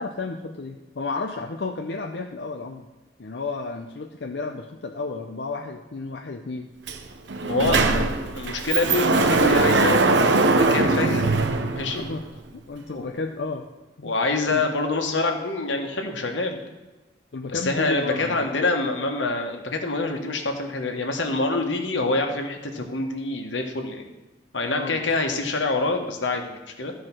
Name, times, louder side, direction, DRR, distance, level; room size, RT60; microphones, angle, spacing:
voice 1, 0.0-2.9 3.2-6.7 7.6-8.1 12.0-12.2 12.5-13.6 14.0-14.1 14.5-14.7 17.3-18.5 24.7-25.1, left 3 dB, 65° left, 2 dB, 0.6 m, -32 dB
Sliding door, 6.9-7.0 7.3-12.3, right 3 dB, 75° right, 0.8 m, -21 dB
voice 2, 7.4-7.8 8.3-10.0 10.7-11.3 11.7-12.1 12.9-13.1 14.0-16.6 17.4-24.1 24.5-26.9, left 3 dB, 85° left, 3 dB, 1.4 m, -26 dB
13.0 x 4.7 x 6.0 m, 1.1 s
head